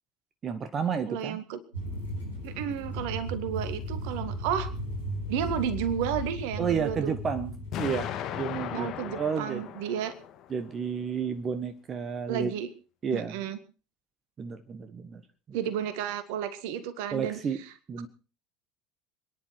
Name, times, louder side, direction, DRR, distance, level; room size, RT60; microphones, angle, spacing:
voice 1, 0.4-1.4 6.6-9.6 10.5-12.5 13.0-13.4 14.4-15.2 15.5-15.6 17.1-17.6 17.9-18.1, right 6 dB, 30° right, 10 dB, 1.3 m, -31 dB
voice 2, 1.1-1.6 2.4-4.7 5.3-7.1 8.7-10.1 12.3-12.7 13.1-13.6 15.5-17.4, right 9 dB, 60° right, 13 dB, 1.8 m, -32 dB
sound 1, 1.7-8.0, equal, 90° left, 7.5 m, -36 dB
Explosion, 7.7-10.7, left 10 dB, 45° left, 1.9 m, -37 dB
26.5 x 10.5 x 4.6 m, 0.36 s
figure-of-eight pair, 70°, 0 cm